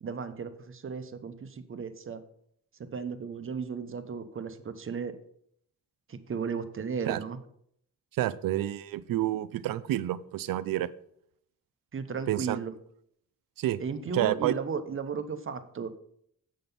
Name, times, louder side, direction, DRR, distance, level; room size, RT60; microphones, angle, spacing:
voice 1, 0.0-2.2 2.8-5.1 6.1-7.4 11.9-12.7 13.8-15.9, right 5 dB, 40° right, 10 dB, 0.8 m, -35 dB
voice 2, 8.2-10.9 12.3-12.6 13.6-13.8 14.1-14.5, right 13 dB, 85° right, 17 dB, 0.6 m, -29 dB
7.6 x 6.9 x 5.3 m, 0.68 s
cardioid pair, 115°, 33 cm